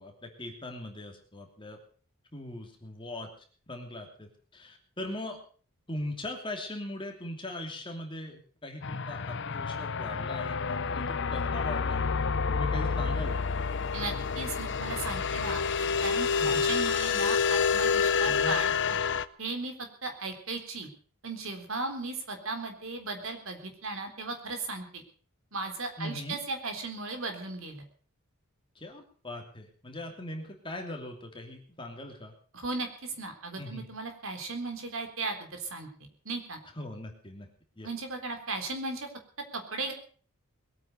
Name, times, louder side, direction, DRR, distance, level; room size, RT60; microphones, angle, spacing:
voice 1, 0.0-1.8 2.3-3.3 3.7-5.4 5.9-12.0 12.5-13.5 16.4-16.7 18.2-18.6 26.0-26.4 28.7-32.3 33.6-33.9 36.7-37.5 37.8-37.9, left 1 dB, 20° left, 3 dB, 2.8 m, -40 dB
sound 1, 8.8-19.2, left 5 dB, 55° left, 0.7 m, -28 dB
voice 2, 13.9-19.0 19.4-20.9 21.2-25.0 25.5-27.8 32.5-36.6 37.8-39.1 39.5-39.9, right 3 dB, 65° right, 6 dB, 3.9 m, -36 dB
21.5 x 9.2 x 6.6 m, 0.43 s
head